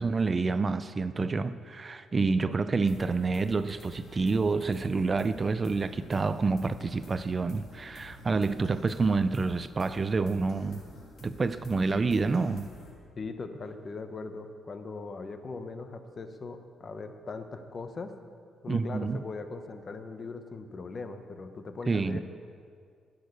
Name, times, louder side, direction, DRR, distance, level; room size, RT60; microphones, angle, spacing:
voice 1, 0.0-10.8 11.2-12.7 18.7-19.2 21.9-22.2, right 4 dB, 30° right, 13 dB, 0.4 m, -28 dB
sound 1, 2.8-12.9, left 1 dB, 55° left, 3.1 m, -50 dB
voice 2, 13.2-18.1 18.6-22.2, left 4 dB, 40° left, 8 dB, 1.0 m, -40 dB
15.0 x 6.5 x 6.6 m, 2.2 s
cardioid pair, 90°, 0 cm